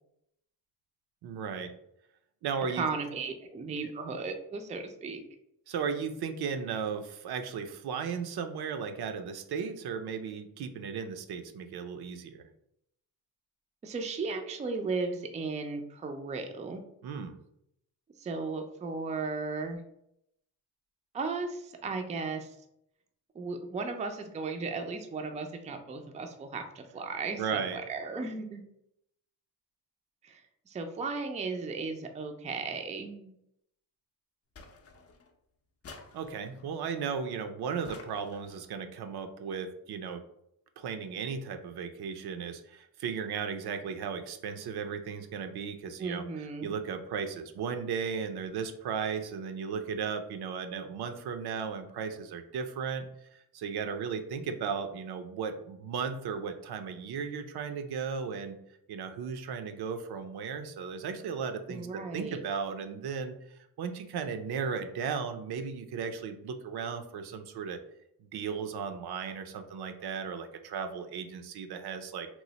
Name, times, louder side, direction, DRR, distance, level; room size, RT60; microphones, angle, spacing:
voice 1, 1.2-1.7 2.4-2.9 5.7-12.4 17.0-17.3 27.4-27.8 36.1-40.2 40.8-53.0 53.3-58.6 58.9-63.3 63.8-67.8 68.3-72.3, right 6 dB, 75° right, 7 dB, 0.5 m, -35 dB
voice 2, 2.7-5.2 13.8-16.8 18.2-19.8 21.1-22.6 23.3-28.6 30.2-33.3 46.0-46.7 61.7-62.4, right 4 dB, 20° right, 5 dB, 0.3 m, -35 dB
sound 1, 34.6-35.3 35.8-36.7 37.8-38.7, left 4 dB, 40° left, 0.5 m, -51 dB
3.0 x 2.0 x 3.9 m, 0.77 s
cardioid pair, 115°, 39 cm